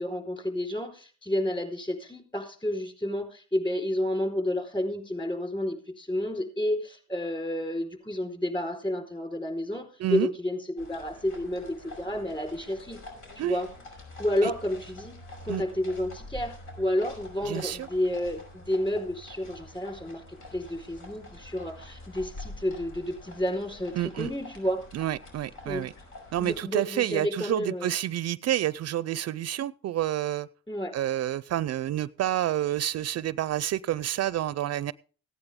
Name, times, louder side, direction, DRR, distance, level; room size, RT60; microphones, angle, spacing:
voice 1, 0.0-13.0 13.4-13.7 14.2-15.2 15.4-20.2 20.5-24.8 25.6-25.9 26.4-28.0 30.7-30.9, left 1 dB, 15° left, 4.5 m, -30 dB
voice 2, 10.0-10.3 13.4-13.6 14.4-14.5 15.5-15.6 17.5-17.9 23.9-24.3 24.9-25.9 26.3-30.5 30.9-34.9, right 12 dB, 55° right, 0.4 m, -29 dB
sound 1, 10.8-26.6, left 2 dB, 80° left, 5.6 m, -46 dB
16.0 x 9.7 x 3.6 m
cardioid pair, 90°, 30 cm